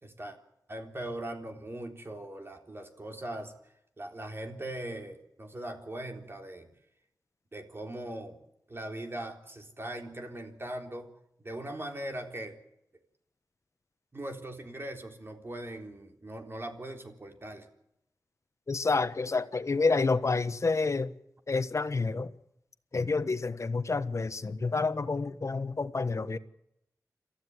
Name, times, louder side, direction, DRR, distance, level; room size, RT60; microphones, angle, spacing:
voice 1, 0.0-0.4 0.7-3.5 4.0-6.7 7.5-8.4 8.7-11.1 11.4-12.6 14.1-17.7, right 1 dB, 35° right, 3.8 m, -40 dB
voice 2, 18.7-21.1 21.5-22.3 22.9-26.4, left 3 dB, 50° left, 1.2 m, -29 dB
26.5 x 15.0 x 9.6 m
wide cardioid pair, 85°, 7 cm